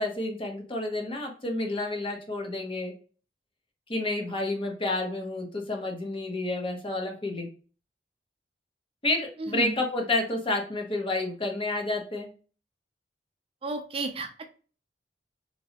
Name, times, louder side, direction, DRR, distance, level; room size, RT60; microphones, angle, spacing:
voice 1, 0.0-2.9 3.9-7.5 9.0-12.3, left 2 dB, 30° left, 2 dB, 0.8 m, -30 dB
voice 2, 9.4-9.7 13.6-14.4, right 2 dB, 35° right, 6 dB, 0.4 m, -32 dB
3.0 x 2.9 x 2.8 m, 0.38 s
head